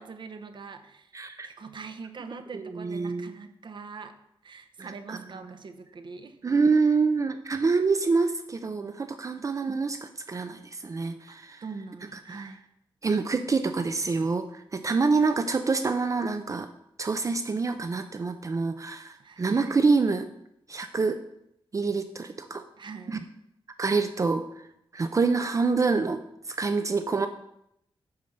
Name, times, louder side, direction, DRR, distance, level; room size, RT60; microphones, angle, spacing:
voice 1, 0.0-1.1 1.4-4.2 4.4-6.4 9.4-9.5 11.6-12.6 19.2-19.4 22.8-23.2, right 4 dB, 55° right, 7 dB, 0.8 m, -42 dB
voice 2, 1.1-1.5 2.5-3.3 4.8-5.5 6.4-11.6 12.1-12.5 13.0-16.7 17.0-20.3 20.7-21.2 21.7-22.6 23.1-23.2 23.8-24.7 24.9-27.3, right 4 dB, 35° right, 8 dB, 0.5 m, -26 dB
9.3 x 4.4 x 6.5 m, 0.78 s
wide cardioid pair, 125°, 9 cm